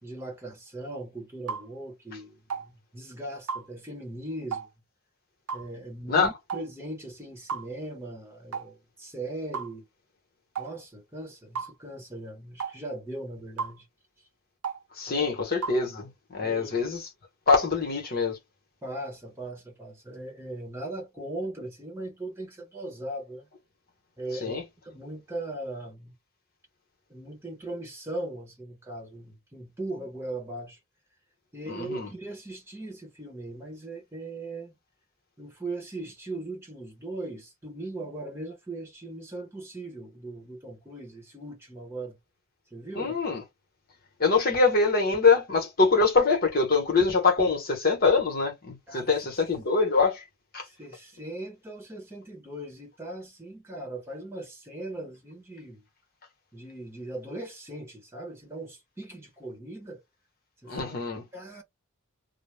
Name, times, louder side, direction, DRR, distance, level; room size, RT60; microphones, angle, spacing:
voice 1, 0.0-4.7 5.5-9.8 10.6-13.8 15.1-15.3 16.4-16.7 18.8-23.5 24.2-26.1 27.1-30.8 31.5-34.7 35.4-42.2 42.7-43.2 48.9-49.3 50.6-55.8 56.5-60.0 60.6-61.0 61.3-61.6, right 2 dB, 10° right, 1.0 m, -39 dB
sound 1, 1.5-1.7 2.5-2.7 3.5-3.7 4.5-4.7 5.5-5.7 6.5-6.7 7.5-7.7 8.5-8.7 9.5-9.7 10.6-10.7 11.6-11.7 12.6-12.8 13.6-13.8 14.6-14.8 15.6-15.8, right 6 dB, 85° right, 0.6 m, -33 dB
voice 2, 15.0-17.1 17.5-18.4 24.4-24.6 31.7-32.1 42.9-43.4 44.2-50.2 50.5-50.6 60.7-61.3, left 4 dB, 45° left, 1.0 m, -24 dB
2.3 x 2.0 x 3.3 m
head